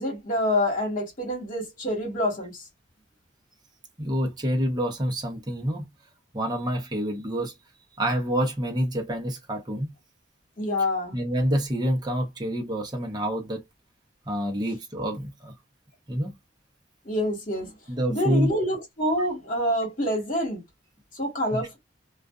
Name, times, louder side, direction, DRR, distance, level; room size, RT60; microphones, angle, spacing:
voice 1, 0.0-2.6 10.6-11.2 17.0-17.7 18.1-20.6 21.1-21.8, left 1 dB, 45° left, 1.4 m, -27 dB
voice 2, 4.0-5.9 6.3-7.5 8.0-9.9 11.1-13.6 14.3-15.5 16.1-16.3 17.9-18.5 19.2-19.3 21.5-21.6, equal, 20° right, 0.7 m, -27 dB
2.5 x 2.3 x 2.3 m
head